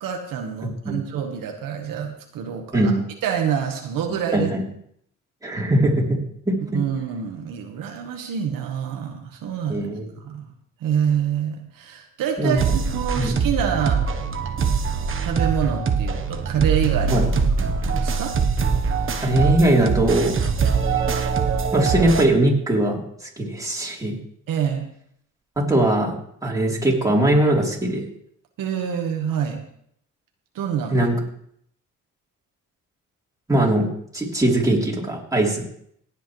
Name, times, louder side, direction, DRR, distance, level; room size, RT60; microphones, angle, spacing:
voice 1, 0.0-2.9 3.2-4.5 6.7-9.9 10.2-10.5 10.8-14.1 15.2-17.3 17.5-18.3 24.5-24.9 28.6-29.6 30.5-31.1, right 8 dB, 80° right, 3 dB, 1.6 m, -26 dB
voice 2, 4.3-4.6 5.4-6.2 6.5-6.8 9.7-10.1 12.4-12.6 13.2-13.4 17.1-17.2 19.1-20.3 21.7-24.2 25.6-28.0 30.9-31.2 33.5-35.6, right 1 dB, 10° right, -3 dB, 3.8 m, -20 dB
sound 1, 12.6-22.2, right 5 dB, 40° right, 1.2 m, -23 dB
17.5 x 8.6 x 3.3 m, 0.68 s
cardioid pair, 85°, 33 cm